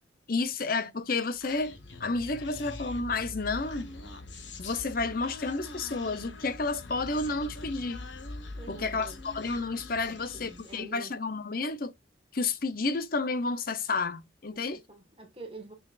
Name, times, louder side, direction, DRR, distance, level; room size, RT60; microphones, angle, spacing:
voice 1, 0.3-1.7 2.0-3.9 4.6-8.0 8.7-11.9 12.3-14.8, left 3 dB, 50° left, 0.8 m, -31 dB
Human voice, 1.4-10.9, left 2 dB, 75° left, 1.5 m, -43 dB
voice 2, 8.6-9.2 10.1-11.2 14.5-15.7, right 2 dB, 30° right, 1.6 m, -47 dB
6.3 x 6.3 x 2.5 m
head